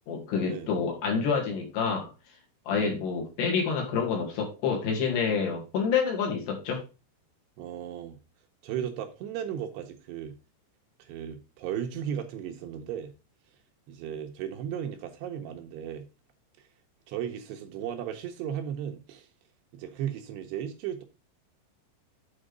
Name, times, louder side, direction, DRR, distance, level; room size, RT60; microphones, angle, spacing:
voice 1, 0.1-2.1 2.7-6.8, left 5 dB, 70° left, 4.2 m, -28 dB
voice 2, 7.6-8.2 8.6-10.4 11.0-13.1 13.9-16.1 17.1-19.3 19.7-21.0, right 9 dB, 75° right, 2.7 m, -35 dB
8.8 x 4.5 x 5.0 m
omnidirectional pair, 5.3 m